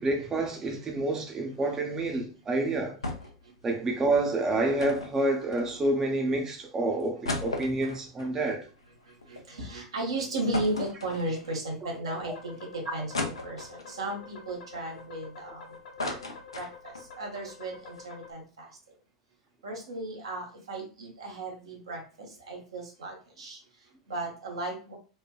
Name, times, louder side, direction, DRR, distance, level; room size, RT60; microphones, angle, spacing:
voice 1, 0.0-3.0 3.6-8.7, right 2 dB, 20° right, 0.5 m, -28 dB
sound 1, 3.0-3.4 3.7-3.8 4.8-6.0 6.6-6.7 7.0-9.4 9.8-9.9 10.5-11.7 12.2-12.3 13.1-14.0 14.5-15.5 15.8-17.1 17.4-17.5 17.8-18.0, left 2 dB, 80° left, 0.5 m, -36 dB
voice 2, 9.0-15.8 16.5-18.9 19.6-25.0, right 2 dB, 70° right, 0.8 m, -35 dB
sound 2, 12.1-18.3, left 5 dB, 65° left, 0.9 m, -48 dB
3.1 x 2.1 x 2.2 m
figure-of-eight pair, 90°, 3 cm